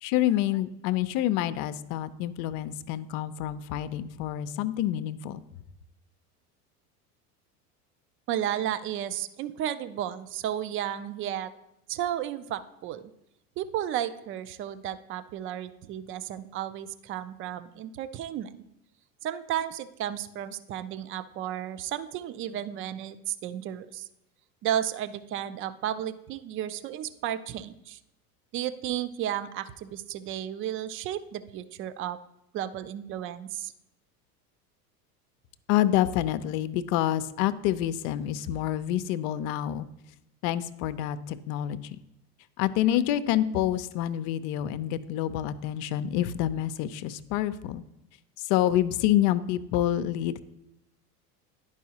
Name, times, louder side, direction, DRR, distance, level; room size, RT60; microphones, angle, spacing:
voice 1, 0.0-5.4 35.7-39.9 40.4-42.0 42.6-47.8 48.4-50.4, left 12 dB, 55° left, 14 dB, 0.5 m, -27 dB
voice 2, 8.3-11.5 11.9-13.0 13.6-18.6 19.2-24.1 24.6-28.0 28.5-32.2 32.5-33.7, right 11 dB, 30° right, 14 dB, 0.4 m, -33 dB
10.5 x 4.8 x 2.8 m, 0.83 s
hypercardioid pair, 85°, 46 cm